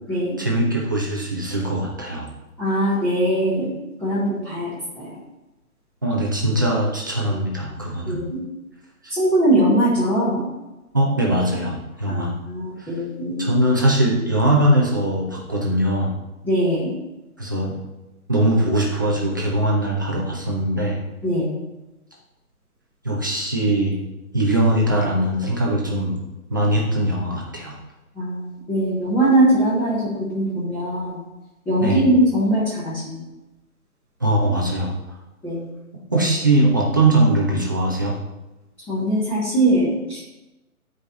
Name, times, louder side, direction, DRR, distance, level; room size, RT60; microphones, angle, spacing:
voice 1, 0.4-2.3 6.0-8.2 9.0-9.2 10.9-12.3 12.8-12.9 13.4-16.1 17.4-17.8 18.3-21.0 23.0-24.0 24.3-26.2 26.5-27.8 31.8-32.0 34.2-34.9 36.1-38.1, right 1 dB, 15° right, -3 dB, 0.6 m, -21 dB
voice 2, 2.6-3.7 4.0-4.7 4.9-5.2 8.1-8.4 9.1-10.4 12.1-13.5 16.4-16.9 21.2-21.5 28.1-30.0 30.3-31.2 31.6-33.2 35.4-35.7 38.9-40.3, right 1 dB, 5° left, -12 dB, 1.6 m, -21 dB
11.0 x 4.9 x 4.0 m, 1.0 s
figure-of-eight pair, 145°, 44 cm